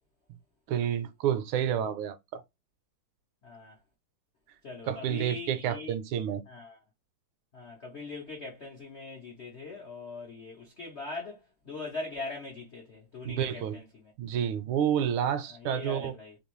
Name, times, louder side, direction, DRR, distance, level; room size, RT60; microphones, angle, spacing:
voice 1, 0.7-2.4 4.9-6.4 13.2-13.8 14.2-16.1, right 9 dB, 75° right, 1.4 m, -29 dB
voice 2, 3.4-3.7 4.6-5.9 6.5-6.8 7.5-11.4 11.6-14.1 15.5-16.4, left 3 dB, 65° left, 0.6 m, -41 dB
3.5 x 2.9 x 3.0 m
omnidirectional pair, 2.4 m